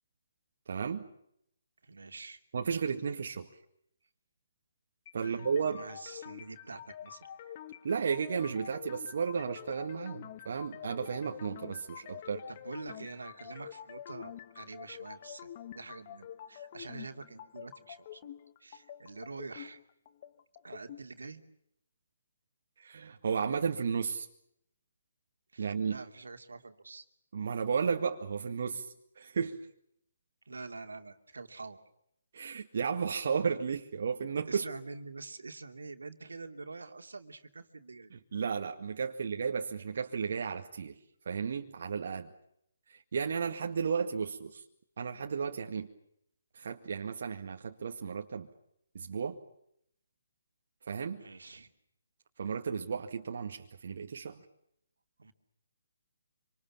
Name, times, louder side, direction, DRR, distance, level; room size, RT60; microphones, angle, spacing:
voice 1, 0.7-1.0 2.5-3.5 5.1-5.9 7.8-12.4 22.8-24.3 25.6-26.0 27.3-29.6 32.3-34.6 38.1-40.9 41.3-42.3 42.9-44.6 45.0-45.9 46.5-48.5 48.9-49.4 50.8-51.2 52.4-54.4, right 6 dB, 55° right, 2.0 m, -33 dB
voice 2, 1.8-2.4 5.2-7.5 12.5-18.3 18.6-19.8 20.6-21.4 25.5-27.1 30.5-31.8 34.4-38.1 51.2-51.7 55.2-55.3, right 3 dB, 75° right, 2.7 m, -46 dB
sound 1, 5.1-21.0, left 10 dB, 40° left, 1.3 m, -47 dB
26.5 x 26.5 x 7.2 m
figure-of-eight pair, 140°, 0 cm